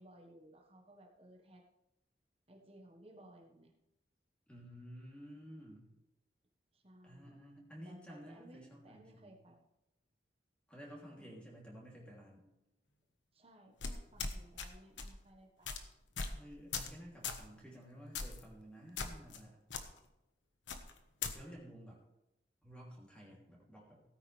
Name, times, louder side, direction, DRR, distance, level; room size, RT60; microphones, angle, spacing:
voice 1, 0.0-1.6 2.5-3.7 6.7-7.4 7.8-9.6 11.1-11.3 13.3-15.8, right 1 dB, 30° right, 2 dB, 1.4 m, -59 dB
voice 2, 4.5-5.9 7.0-9.4 10.7-12.4 16.3-19.6 21.3-22.0 22.6-24.0, equal, 5° left, -3 dB, 2.9 m, -53 dB
sound 1, 13.8-14.7 15.0-15.2 15.6-15.8 16.2-16.4 16.7-16.9 17.2-17.4 18.1-18.4 19.0-19.4 19.7-19.8 20.7-21.3, left 5 dB, 90° left, 1.2 m, -39 dB
17.0 x 9.7 x 3.4 m, 0.91 s
head